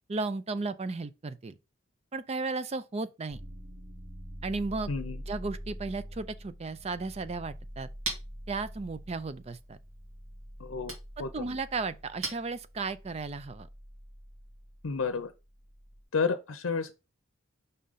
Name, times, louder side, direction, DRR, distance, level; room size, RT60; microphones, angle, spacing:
voice 1, 0.1-1.6 2.1-3.4 4.4-4.9 5.3-7.9 8.5-9.8 11.2-13.7, right 3 dB, 30° right, 0.4 m, -34 dB
sound 1, 3.3-16.0, equal, 65° right, 1.8 m, -46 dB
voice 2, 4.9-5.2 10.6-10.9 11.2-11.4 14.8-15.3 16.1-16.9, left 5 dB, 80° left, 0.6 m, -31 dB
Chink clink, 7.4-13.1, right 3 dB, 85° right, 2.2 m, -44 dB
5.5 x 3.7 x 5.5 m
head